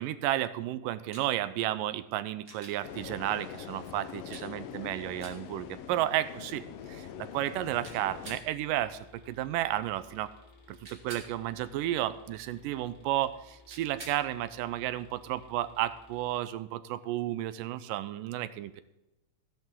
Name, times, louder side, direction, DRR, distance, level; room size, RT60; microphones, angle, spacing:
voice 1, 0.0-10.3 10.7-18.8, right 13 dB, 80° right, 14 dB, 2.2 m, -32 dB
sound 1, 1.1-1.3 2.4-2.8 4.3-4.5 5.2-5.4 7.8-8.4 10.8-11.3 13.7-14.2 16.5-16.6, right 2 dB, 30° right, 2.4 m, -47 dB
sound 2, 2.8-8.4, left 9 dB, 90° left, 2.6 m, -43 dB
sound 3, 8.0-16.4, left 2 dB, 35° left, 2.9 m, -57 dB
15.5 x 10.5 x 3.7 m, 0.97 s
omnidirectional pair, 3.9 m